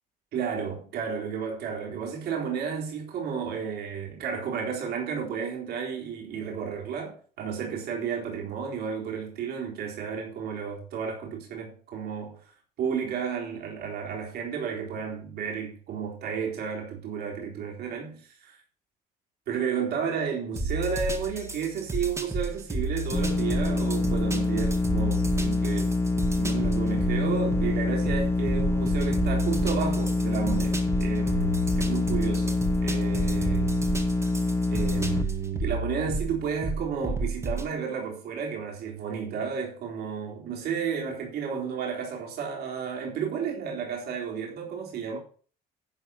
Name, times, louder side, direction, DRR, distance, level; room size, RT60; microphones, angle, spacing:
voice 1, 0.3-12.4 12.8-18.6 19.5-33.8 34.7-45.2, right 7 dB, 70° right, 3.9 m, -32 dB
sound 1, 20.6-37.7, right 2 dB, 15° right, 2.0 m, -32 dB
sound 2, 23.1-35.2, left 3 dB, 15° left, 0.8 m, -26 dB
11.5 x 4.7 x 7.0 m
cardioid pair, 110°, 17 cm